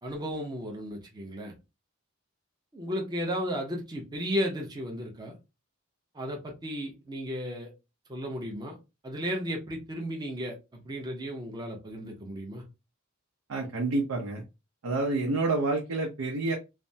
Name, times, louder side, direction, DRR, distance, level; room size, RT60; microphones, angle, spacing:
voice 1, 0.0-1.5 2.7-5.3 6.1-7.7 8.1-8.8 9.0-12.6, equal, 20° right, 0.6 m, -34 dB
voice 2, 13.5-14.4 14.8-16.5, right 2 dB, 80° right, 0.6 m, -28 dB
3.2 x 2.0 x 2.6 m
head